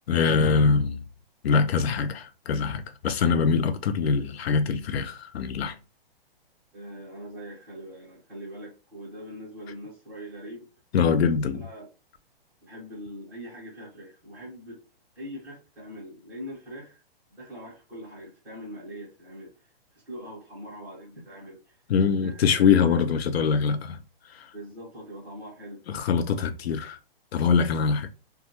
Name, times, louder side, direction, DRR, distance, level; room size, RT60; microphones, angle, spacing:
voice 1, 0.1-1.0 1.4-5.8 10.9-11.7 21.9-24.0 24.2-24.5 25.9-27.0 27.3-28.1, left 5 dB, 85° left, 0.5 m, -23 dB
voice 2, 6.7-10.7 11.5-11.9 12.6-14.8 15.1-17.0 17.3-19.5 19.9-21.8 22.2-23.0 24.5-25.8, equal, 5° right, 0.9 m, -42 dB
2.2 x 2.1 x 2.8 m
hypercardioid pair, 170°, 30 cm